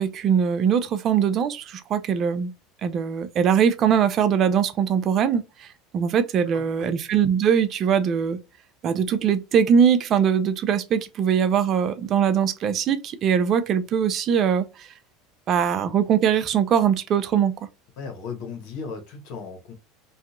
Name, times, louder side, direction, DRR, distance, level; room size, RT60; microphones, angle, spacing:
voice 1, 0.0-2.5 2.8-5.7 5.9-8.4 8.8-14.9 15.5-17.5, right 7 dB, 45° right, 0.4 m, -21 dB
voice 2, 6.5-6.9 18.0-19.7, left 5 dB, 65° left, 1.1 m, -36 dB
2.7 x 2.4 x 2.4 m
supercardioid pair, 100°, 0 cm